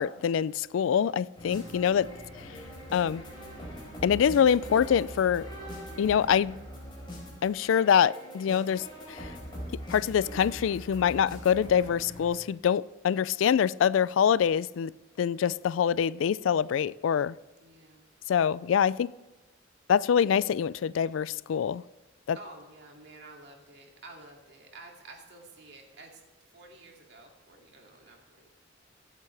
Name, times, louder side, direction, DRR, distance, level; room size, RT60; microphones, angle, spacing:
voice 1, 0.0-2.1 2.4-2.5 2.9-3.2 4.0-5.5 6.0-6.6 7.4-9.3 9.9-14.9 15.2-17.3 18.3-19.1 19.9-21.8 22.3-22.4, left 8 dB, 90° left, 20 dB, 0.3 m, -25 dB
sound 1, 1.4-12.3, equal, 25° left, 4.3 m, -42 dB
voice 2, 1.7-2.2 17.6-18.1 22.3-28.5, right 2 dB, 60° right, 0 dB, 2.4 m, -51 dB
23.5 x 8.2 x 3.3 m, 1.2 s
head